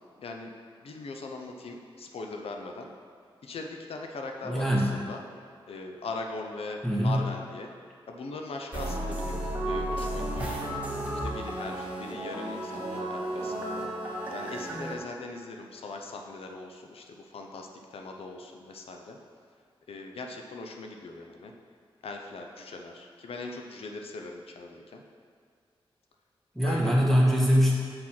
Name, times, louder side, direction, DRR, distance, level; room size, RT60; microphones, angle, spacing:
voice 1, 0.2-0.5 0.8-2.9 3.4-5.2 5.7-7.7 8.1-10.7 11.1-13.9 14.3-19.2 19.9-21.5 22.0-25.0 26.6-26.9, left 3 dB, 85° left, 2 dB, 0.6 m, -40 dB
voice 2, 4.4-4.9 6.8-7.2 26.5-27.7, equal, ahead, -5 dB, 1.4 m, -22 dB
sound 1, 8.7-15.0, right 1 dB, 15° right, 1.8 m, -33 dB
6.3 x 4.3 x 5.9 m, 2.1 s
wide cardioid pair, 90°, 10 cm